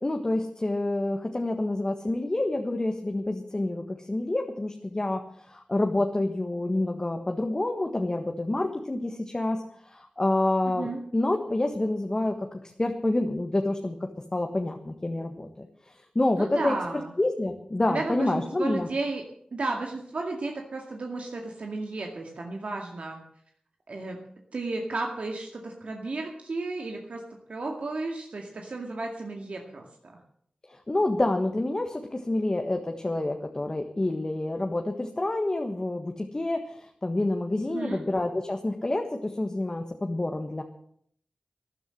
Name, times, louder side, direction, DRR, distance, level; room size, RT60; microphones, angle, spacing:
voice 1, 0.0-5.2 5.5-12.3 12.8-15.7 16.1-18.9 30.9-40.6, left 2 dB, 30° left, 4 dB, 1.5 m, -28 dB
voice 2, 10.6-11.0 16.4-17.1 17.9-19.2 19.5-23.2 23.9-24.2 24.5-27.2 27.5-30.2 37.7-38.0, right 3 dB, 70° right, 2 dB, 2.1 m, -33 dB
13.0 x 11.0 x 7.7 m, 0.64 s
cardioid pair, 60°, 2 cm